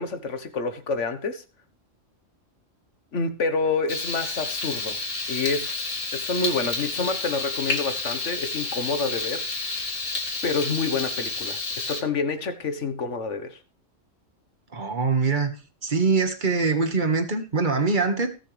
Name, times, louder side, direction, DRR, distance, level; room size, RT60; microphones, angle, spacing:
voice 1, 0.0-1.4 3.1-5.0 5.3-9.5 10.4-13.6, left 4 dB, 70° left, 1.6 m, -28 dB
Frying (food), 3.9-12.0, left 3 dB, 85° left, 2.5 m, -30 dB
voice 2, 14.7-15.5 15.8-18.3, right 4 dB, 40° right, 1.8 m, -23 dB
20.5 x 7.1 x 3.4 m
omnidirectional pair, 1.3 m